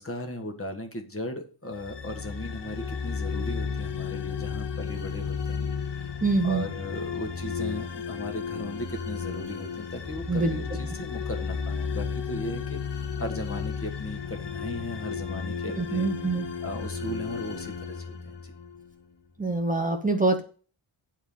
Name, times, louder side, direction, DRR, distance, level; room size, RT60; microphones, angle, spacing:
voice 1, 0.0-6.1 6.4-16.1 16.6-18.5, left 1 dB, 30° left, 3 dB, 1.6 m, -37 dB
sound 1, 1.7-18.9, left 6 dB, 60° left, 1.3 m, -33 dB
voice 2, 6.2-6.7 10.3-10.6 15.8-16.5 19.4-20.4, right 3 dB, 15° right, 4 dB, 0.9 m, -25 dB
9.8 x 4.6 x 7.1 m, 0.40 s
wide cardioid pair, 155°, 47 cm